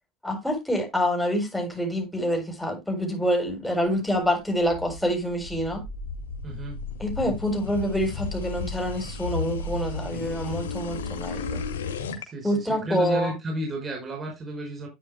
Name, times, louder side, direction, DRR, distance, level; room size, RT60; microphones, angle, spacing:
voice 1, 0.2-5.8 7.0-11.6 12.4-13.3, equal, 5° left, 7.8 m, -26 dB
sound 1, 4.2-12.2, left 4 dB, 90° left, 2.2 m, -34 dB
voice 2, 6.4-6.8 12.2-14.9, right 1 dB, 30° right, 5.4 m, -32 dB
12.5 x 9.4 x 2.2 m
hypercardioid pair, 85°, 0 cm